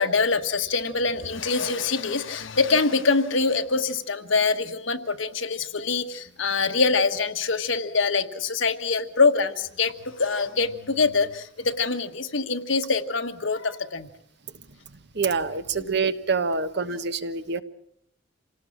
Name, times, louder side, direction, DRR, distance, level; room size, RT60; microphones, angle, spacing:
voice 1, 0.0-14.1 15.7-15.9, left 4 dB, 65° left, 7 dB, 1.5 m, -24 dB
voice 2, 15.1-17.6, right 4 dB, 55° right, 10 dB, 1.2 m, -26 dB
27.0 x 18.5 x 7.4 m, 0.70 s
head